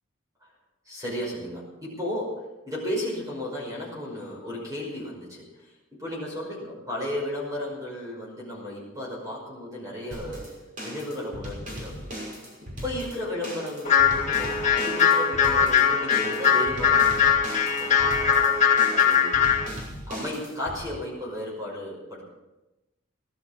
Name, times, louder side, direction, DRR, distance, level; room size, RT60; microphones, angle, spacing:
voice 1, 0.9-10.5 10.8-11.9 12.6-18.2 18.9-19.5 20.1-22.2, left 1 dB, 15° right, -4 dB, 5.5 m, -34 dB
sound 1, 10.1-20.8, equal, 40° right, 5.9 m, -38 dB
sound 2, 13.8-19.7, left 7 dB, 35° left, 1.9 m, -21 dB
18.0 x 12.5 x 5.9 m, 1.0 s
head